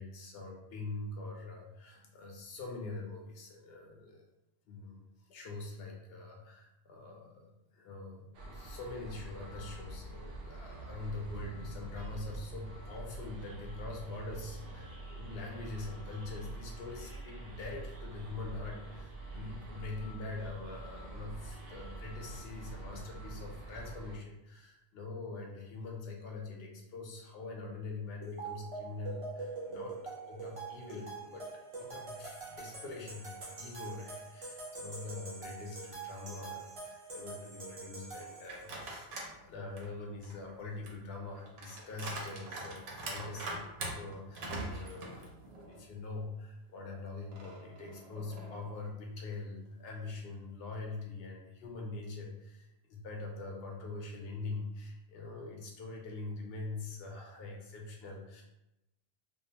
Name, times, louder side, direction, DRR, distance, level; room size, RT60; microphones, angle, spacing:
voice 1, 0.0-4.3 4.7-31.5 31.8-58.4, left 3 dB, 65° left, 0 dB, 0.8 m, -44 dB
sound 1, 8.3-24.2, right 2 dB, 65° right, 0.7 m, -46 dB
sound 2, 28.2-38.8, right 3 dB, 45° right, 0.4 m, -44 dB
sound 3, 38.5-39.4 39.8-45.9 46.2-46.3 47.3-48.8, right 2 dB, 90° right, 0.9 m, -43 dB
2.3 x 2.3 x 2.7 m, 0.90 s
omnidirectional pair, 1.2 m